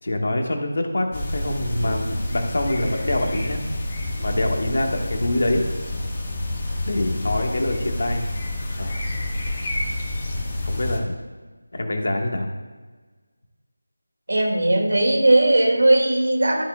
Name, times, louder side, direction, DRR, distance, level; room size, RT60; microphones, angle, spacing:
voice 1, 0.0-3.6 4.2-5.6 6.8-8.3 8.7-9.0 10.6-11.2 11.7-12.5, left 1 dB, 50° left, 3 dB, 1.6 m, -25 dB
sound 1, 1.1-11.0, left 1 dB, 25° left, 1.7 m, -28 dB
voice 2, 14.3-16.6, right 1 dB, 55° right, 1 dB, 2.3 m, -18 dB
13.0 x 8.7 x 2.4 m, 1.4 s
figure-of-eight pair, 165°, 0 cm